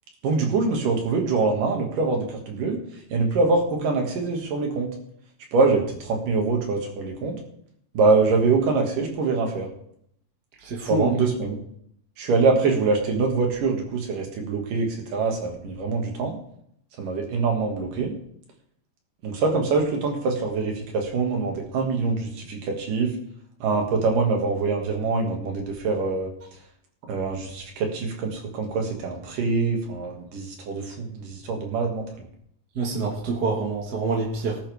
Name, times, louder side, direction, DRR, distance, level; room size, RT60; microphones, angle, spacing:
voice 1, 0.2-2.8 3.1-4.9 5.5-7.4 7.9-9.7 10.9-11.6 12.2-16.4 17.0-18.1 19.2-23.1 23.6-26.3 27.1-32.0, right 4 dB, 75° right, 2 dB, 3.8 m, -24 dB
voice 2, 10.6-11.1 32.8-34.6, right 3 dB, 35° right, -2 dB, 1.8 m, -26 dB
19.0 x 10.0 x 3.6 m, 0.70 s
omnidirectional pair, 3.9 m